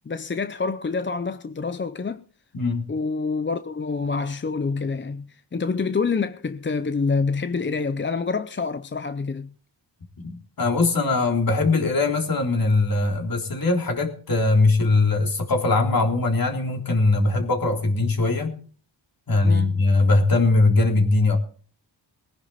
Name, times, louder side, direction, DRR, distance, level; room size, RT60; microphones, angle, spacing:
voice 1, 0.1-2.2 2.9-9.5 19.4-19.8, left 4 dB, 25° left, 0.6 m, -27 dB
voice 2, 2.5-2.8 10.2-18.6 19.3-21.4, left 3 dB, 50° left, 3.6 m, -21 dB
21.0 x 10.5 x 4.3 m
wide cardioid pair, 125°, 44 cm